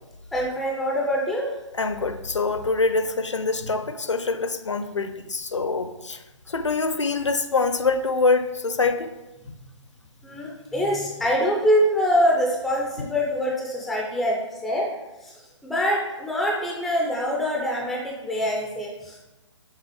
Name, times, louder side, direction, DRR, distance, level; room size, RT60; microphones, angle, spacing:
voice 1, 0.3-1.5 10.2-14.4 14.6-14.9 15.2-15.3 15.6-19.2, equal, ahead, -2 dB, 0.3 m, -24 dB
voice 2, 1.8-6.2 6.5-9.1, left 4 dB, 70° left, 10 dB, 0.6 m, -24 dB
6.7 x 3.7 x 4.6 m, 1.0 s
figure-of-eight pair, 135°, 16 cm